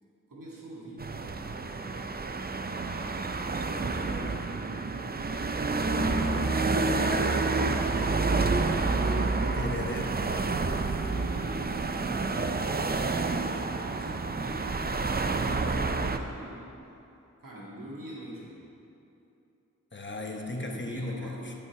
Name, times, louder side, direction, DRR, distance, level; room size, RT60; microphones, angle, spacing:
voice 1, 0.3-4.6 11.0-11.7 11.9-13.2 13.8-16.6 17.4-18.6 20.5-21.5, right 1 dB, 80° right, -6 dB, 2.0 m, -45 dB
sound 1, 1.0-16.2, right 3 dB, 30° right, 0.5 m, -29 dB
voice 2, 9.5-10.3 19.9-21.5, left 2 dB, 35° left, 2 dB, 0.9 m, -36 dB
11.5 x 5.7 x 4.8 m, 2.8 s
wide cardioid pair, 45°, 32 cm